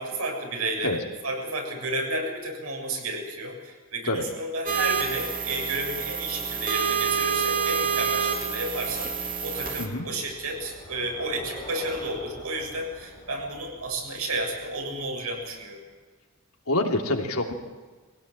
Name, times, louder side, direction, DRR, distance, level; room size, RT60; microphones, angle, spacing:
voice 1, 0.0-15.8, right 2 dB, 90° right, 1 dB, 7.3 m, -32 dB
sound 1, 4.7-9.9, right 6 dB, 40° right, 3.4 m, -28 dB
Bicycle, 9.4-15.8, equal, 20° left, 5.4 m, -46 dB
voice 2, 16.7-17.5, left 2 dB, 85° left, 2 dB, 3.1 m, -26 dB
23.0 x 17.5 x 9.0 m, 1.4 s
head